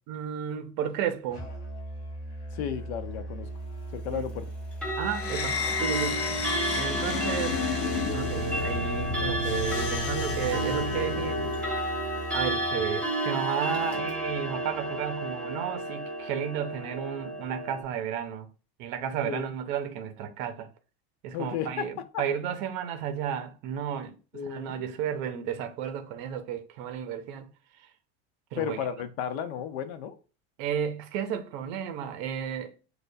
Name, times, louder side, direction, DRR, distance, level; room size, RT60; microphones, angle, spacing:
voice 1, 0.1-1.5 4.1-4.2 4.9-6.2 6.7-7.6 8.1-11.7 12.3-18.5 18.8-20.7 21.2-24.2 24.4-27.5 27.8-27.9 28.5-28.8 30.6-32.7, right 8 dB, 40° right, 0.6 m, -33 dB
Musical instrument, 1.3-13.0, right 1 dB, 25° left, 2.2 m, -39 dB
voice 2, 2.5-3.5 3.9-4.5 19.2-19.5 21.3-21.9 22.1-22.2 24.3-24.8 28.6-30.2, left 8 dB, 80° left, 0.8 m, -33 dB
Clock, 4.7-17.8, right 1 dB, 5° left, 0.6 m, -32 dB
sound 1, 5.1-11.8, left 5 dB, 50° left, 0.8 m, -32 dB
6.5 x 2.2 x 2.6 m
supercardioid pair, 180°, 32 cm